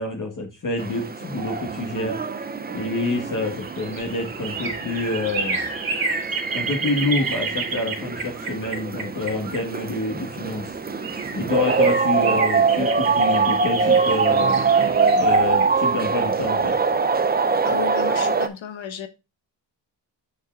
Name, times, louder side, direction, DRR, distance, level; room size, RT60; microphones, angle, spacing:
voice 1, 0.0-2.2 2.7-5.6 6.5-10.8 11.3-14.6 15.1-16.7, left 2 dB, 45° left, 1.6 m, -27 dB
sound 1, 0.8-18.5, right 5 dB, 20° right, 0.6 m, -23 dB
sound 2, 3.4-10.2 10.7-10.8 11.0-16.8 17.1-17.2, right 4 dB, 50° right, 2.2 m, -31 dB
voice 2, 17.6-19.1, left 8 dB, 90° left, 1.2 m, -33 dB
7.4 x 6.7 x 2.5 m
wide cardioid pair, 150°, 45 cm